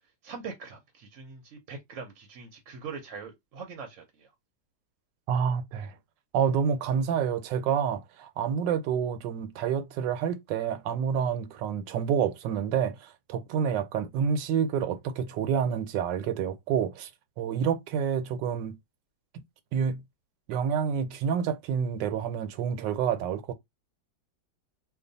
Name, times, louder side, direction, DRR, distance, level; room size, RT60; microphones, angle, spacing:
voice 1, 0.2-4.3, right 5 dB, 60° right, 0.9 m, -42 dB
voice 2, 5.3-5.9 6.3-17.1 17.4-18.8 19.7-20.0 20.5-23.5, right 7 dB, 90° right, 1.3 m, -28 dB
2.9 x 2.3 x 3.8 m
omnidirectional pair, 1.9 m